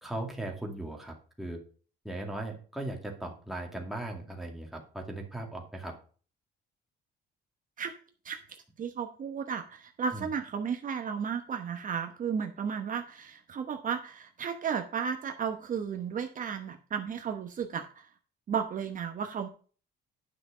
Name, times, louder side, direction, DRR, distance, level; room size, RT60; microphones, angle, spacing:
voice 1, 0.0-1.6 2.0-5.9 10.1-10.3, right 1 dB, ahead, 1 dB, 2.3 m, -38 dB
voice 2, 8.8-18.1 18.5-19.5, right 7 dB, 45° right, 5 dB, 1.0 m, -34 dB
9.9 x 6.0 x 5.0 m, 0.40 s
cardioid pair, 125°, 20 cm